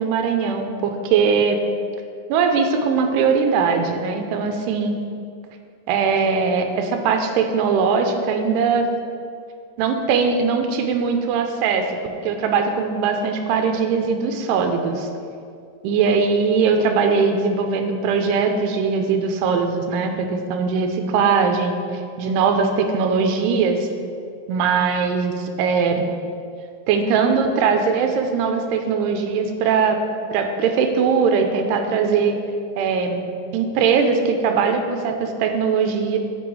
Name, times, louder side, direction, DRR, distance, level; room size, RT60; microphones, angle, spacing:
voice 1, 0.0-1.6 2.3-5.0 5.9-8.9 9.8-11.9 12.2-15.1 15.8-21.8 22.2-23.9 24.5-26.1 26.9-30.0 30.3-32.4 32.8-33.3 33.5-36.2, right 5 dB, 90° right, 5 dB, 2.7 m, -20 dB
7.8 x 6.0 x 4.7 m, 2.3 s
omnidirectional pair, 4.6 m